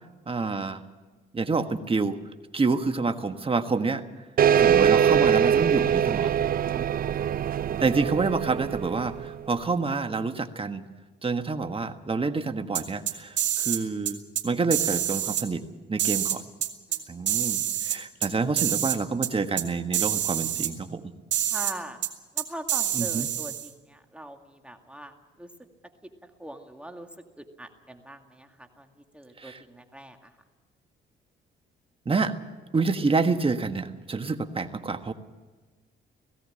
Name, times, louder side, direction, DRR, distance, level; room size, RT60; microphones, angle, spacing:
voice 1, 0.3-0.8 1.3-2.2 2.5-4.0 4.6-6.3 7.8-10.8 11.2-15.6 15.9-16.4 17.1-21.1 22.9-23.3 29.4-29.6 32.0-32.3 32.7-35.1, right 4 dB, 25° right, 8 dB, 1.5 m, -28 dB
sound 1, 4.4-9.5, right 8 dB, 45° right, 0.5 m, -23 dB
voice 2, 6.7-7.2 16.9-17.0 17.6-18.0 21.5-22.0 22.4-25.1 25.4-25.5 26.4-27.1 27.6-28.5 28.8-28.9 29.1-30.2, right 1 dB, 5° right, 5 dB, 2.1 m, -42 dB
sound 2, 12.7-13.8 14.1-14.4 14.7-15.4 16.0-17.0 17.3-18.3 18.6-19.0 19.2-19.3 19.6-19.7 19.9-20.7 21.3-21.7 22.0-22.1 22.4-23.7, right 11 dB, 65° right, 2.2 m, -27 dB
18.5 x 16.5 x 8.7 m, 1.3 s
cardioid pair, 90°, 20 cm